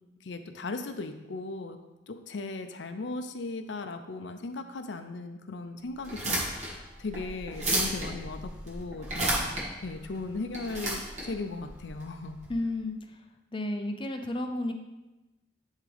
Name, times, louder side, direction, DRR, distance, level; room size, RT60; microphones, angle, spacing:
voice 1, 0.2-1.8 2.1-9.4 9.8-12.4, left 3 dB, 70° left, 7 dB, 0.5 m, -37 dB
sound 1, 6.0-12.5, right 1 dB, 40° right, 1.6 m, -33 dB
voice 2, 12.5-13.0 13.5-14.7, left 1 dB, 25° left, 5 dB, 0.5 m, -31 dB
11.0 x 3.7 x 3.4 m, 1.0 s
head